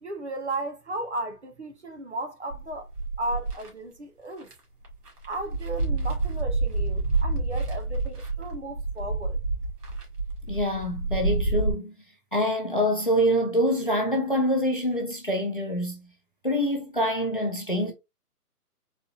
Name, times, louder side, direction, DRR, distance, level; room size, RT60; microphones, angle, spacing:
voice 1, 0.0-2.9 3.2-4.5 5.2-9.4, right 2 dB, 45° right, 0.7 m, -35 dB
sound 1, 2.5-3.7 4.4-4.5 4.8-11.7, right 3 dB, 75° right, 1.9 m, -28 dB
voice 2, 10.5-11.9 12.3-16.1 16.4-17.9, equal, 35° left, 0.5 m, -25 dB
4.0 x 2.7 x 2.3 m
hypercardioid pair, 180°, 47 cm